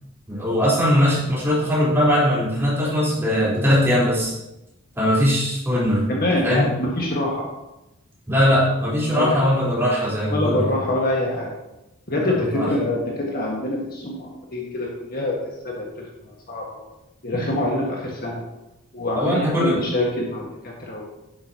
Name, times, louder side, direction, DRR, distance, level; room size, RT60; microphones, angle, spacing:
voice 1, 0.3-4.3 5.0-6.1 6.4-6.6 8.3-10.7 12.2-12.7 19.2-19.8, equal, 10° right, -8 dB, 4.1 m, -20 dB
voice 2, 6.1-7.5 9.1-9.4 10.3-11.5 12.1-15.8 16.5-16.8 17.2-18.4 18.9-21.1, left 1 dB, 40° left, -2 dB, 1.7 m, -25 dB
11.0 x 11.0 x 2.9 m, 0.94 s
head